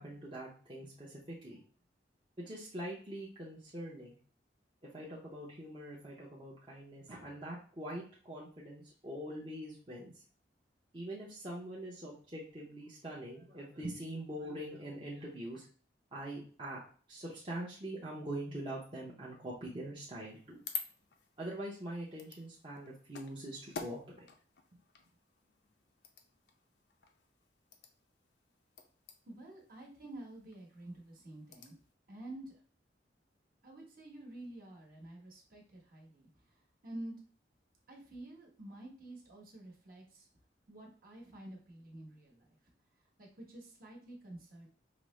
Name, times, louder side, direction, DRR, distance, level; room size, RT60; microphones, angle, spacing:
voice 1, 0.0-1.6 2.4-4.2 4.9-10.1 10.9-15.6 16.1-16.8 17.1-20.6 21.4-24.3, right 1 dB, 30° right, -6 dB, 0.7 m, -43 dB
sound 1, 20.3-31.9, left 6 dB, 75° left, 0.5 m, -50 dB
voice 2, 29.2-31.8 32.1-32.6 33.6-37.2 37.9-40.3 40.7-42.4 43.2-44.7, right 1 dB, 50° right, -2 dB, 1.2 m, -49 dB
4.9 x 2.0 x 3.1 m, 0.42 s
head